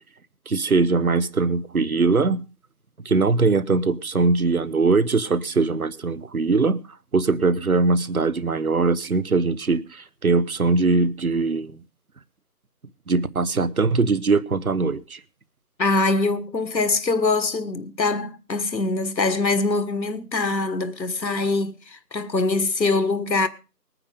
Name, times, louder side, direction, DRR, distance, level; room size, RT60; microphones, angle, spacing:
voice 1, 0.5-2.4 3.0-6.8 7.1-11.7 13.1-15.2, right 3 dB, 60° right, 1.1 m, -21 dB
voice 2, 15.8-23.5, left 3 dB, 85° left, 1.7 m, -23 dB
20.0 x 9.6 x 5.1 m
figure-of-eight pair, 175°, 50 cm